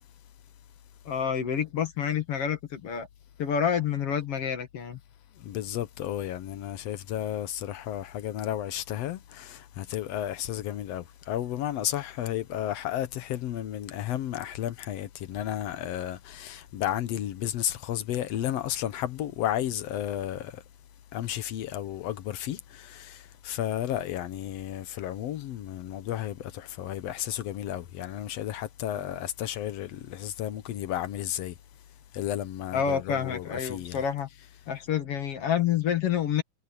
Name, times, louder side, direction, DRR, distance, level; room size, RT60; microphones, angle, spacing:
voice 1, 1.1-3.1 3.4-5.0 32.7-34.3 34.7-36.4, left 8 dB, 50° left, 2.3 m, -28 dB
voice 2, 5.3-20.6 21.1-31.6 32.1-34.0, left 12 dB, 70° left, 1.6 m, -33 dB
omnidirectional pair, 4.0 m